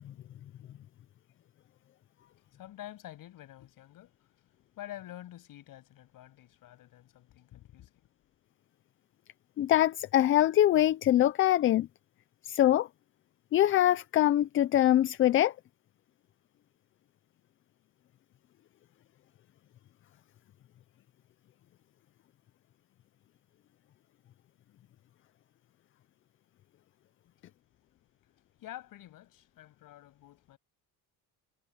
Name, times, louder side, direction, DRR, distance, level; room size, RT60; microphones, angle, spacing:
voice 1, 2.3-8.1 28.6-30.6, left 13 dB, 60° left, 6.8 m, -48 dB
voice 2, 9.6-11.9 12.4-12.9 13.5-15.5, left 12 dB, 35° left, 0.4 m, -23 dB
cardioid pair, 165°, 38 cm